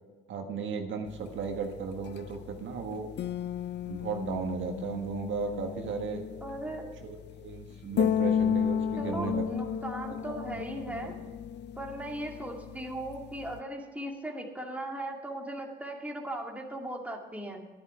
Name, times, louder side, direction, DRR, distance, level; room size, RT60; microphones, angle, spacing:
voice 1, 0.3-3.1 3.8-6.2 7.0-9.7 10.2-10.3 10.9-11.1, right 5 dB, 75° right, 3 dB, 1.6 m, -35 dB
sound 1, 1.1-13.6, left 8 dB, 60° left, 0.6 m, -34 dB
voice 2, 6.4-6.9 7.9-8.1 9.0-11.1 11.8-17.7, right 1 dB, 5° right, 0 dB, 2.2 m, -38 dB
11.5 x 10.0 x 4.9 m, 1.3 s
cardioid pair, 90°, 20 cm